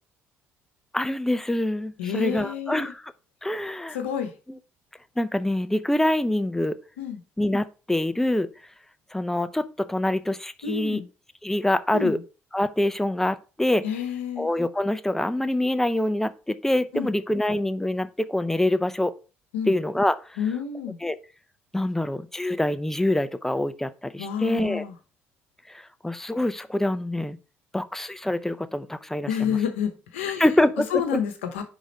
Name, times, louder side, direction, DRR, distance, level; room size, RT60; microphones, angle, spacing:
voice 1, 0.9-3.0 3.4-4.0 5.2-6.8 7.4-8.5 9.1-11.0 11.4-12.2 12.5-13.8 14.4-19.2 19.7-20.2 21.0-21.2 21.7-24.8 25.7-27.4 27.7-29.6 30.4-31.2, left 1 dB, 5° left, 0.6 m, -25 dB
voice 2, 2.0-2.9 3.9-4.3 7.0-7.2 10.6-11.1 11.9-12.2 13.8-14.5 16.9-17.1 19.5-19.7 20.4-21.0 24.2-24.9 29.3-30.5 30.9-31.6, left 8 dB, 80° left, 0.9 m, -29 dB
5.1 x 3.7 x 5.2 m
hypercardioid pair, 50°, 7 cm